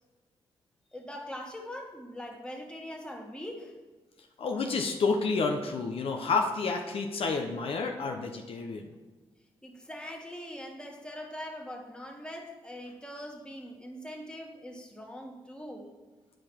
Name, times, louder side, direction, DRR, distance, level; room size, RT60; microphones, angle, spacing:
voice 1, 0.9-3.7 9.6-15.9, equal, 10° left, 1 dB, 1.6 m, -42 dB
voice 2, 4.4-8.9, left 4 dB, 65° left, 3 dB, 0.8 m, -29 dB
9.3 x 4.9 x 4.5 m, 1.3 s
cardioid pair, 60°, 10 cm